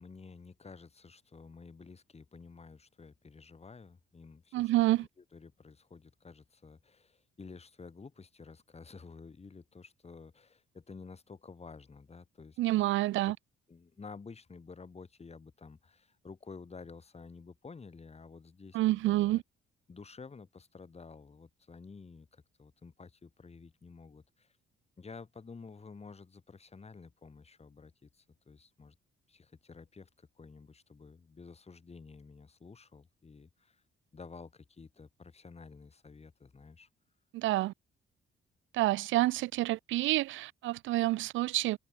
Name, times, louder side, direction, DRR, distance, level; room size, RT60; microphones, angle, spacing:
voice 1, 0.0-4.7 5.0-12.8 13.2-13.3 13.7-19.4 19.9-24.5 25.0-28.9 29.3-33.8 34.1-36.9, left 4 dB, 30° left, 7.4 m, -51 dB
voice 2, 4.5-5.1 12.6-13.4 18.7-19.4 37.3-37.7 38.7-41.8, right 17 dB, 75° right, 0.4 m, -28 dB
cardioid pair, 90°, 20 cm